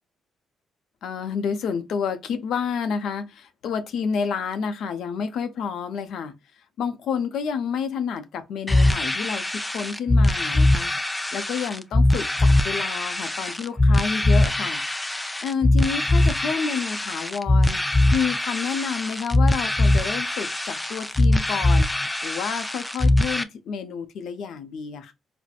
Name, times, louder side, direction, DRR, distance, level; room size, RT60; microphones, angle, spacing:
voice 1, 1.0-6.3 6.8-14.8 15.4-17.8 18.1-25.1, left 6 dB, 75° left, 0.6 m, -29 dB
sound 1, 8.7-23.4, left 1 dB, 10° left, 0.4 m, -21 dB
4.3 x 2.1 x 2.4 m
cardioid pair, 90°, 0 cm